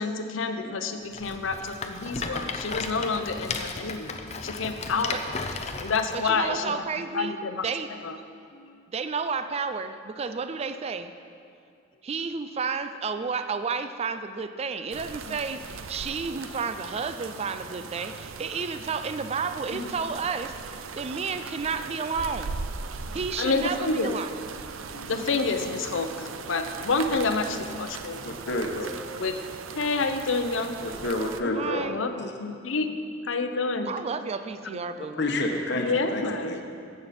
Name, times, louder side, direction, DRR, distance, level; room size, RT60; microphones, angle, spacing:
voice 1, 0.0-5.4 5.8-6.7 7.1-7.6 8.0-8.2 8.5-8.8 15.3-15.4 17.4-17.5 19.7-19.9 21.5-21.6 23.0-24.2 24.9-28.6 29.2-29.4 29.8-30.8 31.4-33.0 33.2-33.9 34.6-34.8 35.7-36.6, left 3 dB, 75° left, 7 dB, 0.7 m, -29 dB
Rattle, 1.1-6.2, left 4 dB, 35° left, 0.6 m, -35 dB
voice 2, 6.1-7.4 7.6-7.9 8.9-11.1 12.0-20.6 20.9-22.5 23.1-24.3 31.5-32.0 33.9-35.2, right 5 dB, 30° right, 10 dB, 0.4 m, -31 dB
sound 1, 14.9-31.4, right 5 dB, 90° right, 0.5 m, -39 dB
voice 3, 28.2-28.9 30.8-31.8 35.2-36.6, left 1 dB, 60° left, 3 dB, 1.1 m, -29 dB
14.5 x 7.8 x 4.2 m, 2.4 s
head